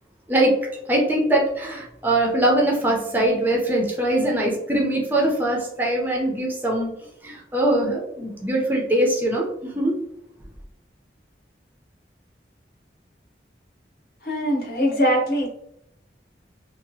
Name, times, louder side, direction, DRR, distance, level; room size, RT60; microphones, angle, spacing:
voice 1, 0.9-6.9 7.2-9.9, right 1 dB, 10° right, -2 dB, 0.5 m, -22 dB
voice 2, 14.2-15.5, equal, 55° left, 0 dB, 0.8 m, -22 dB
2.8 x 2.3 x 2.6 m, 0.77 s
head